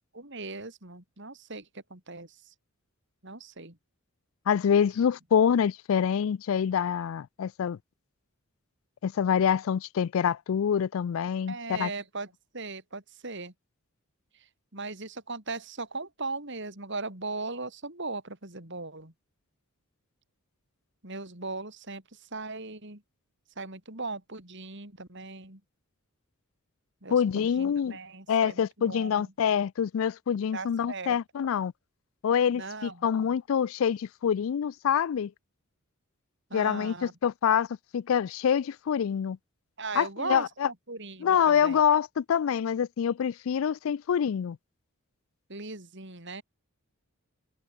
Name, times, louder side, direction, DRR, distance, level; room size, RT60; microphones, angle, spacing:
voice 1, 0.1-2.5 3.2-3.8 11.5-13.5 14.3-19.1 21.0-23.0 23.6-25.6 27.0-29.2 30.5-31.2 32.5-33.0 36.5-37.1 39.8-40.5 40.9-41.8 45.5-46.4, right 3 dB, 55° right, 4.5 m, -38 dB
voice 2, 4.5-7.8 9.0-11.9 27.1-28.0 28.3-31.7 32.2-35.3 36.5-37.7 37.9-39.4 40.0-40.7 41.2-44.6, left 8 dB, 65° left, 0.3 m, -26 dB
head